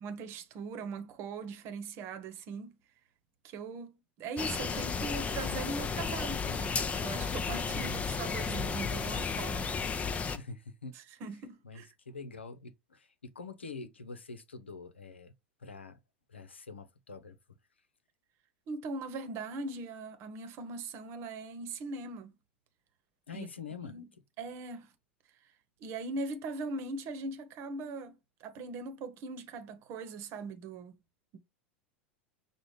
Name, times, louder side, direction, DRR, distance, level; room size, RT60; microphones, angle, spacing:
voice 1, 0.0-2.8 3.4-9.8 10.9-11.9 18.7-22.3 23.3-23.5 23.8-24.1 24.4-24.9 25.8-31.0, right 3 dB, 45° right, 1.0 m, -40 dB
sound 1, 4.4-10.4, left 5 dB, 20° left, 0.7 m, -33 dB
voice 2, 7.7-8.0 10.3-11.0 11.6-15.3 15.6-16.0 16.3-17.3 23.3-24.0, left 4 dB, 90° left, 0.8 m, -45 dB
6.2 x 2.4 x 3.1 m
hypercardioid pair, 90°, 6 cm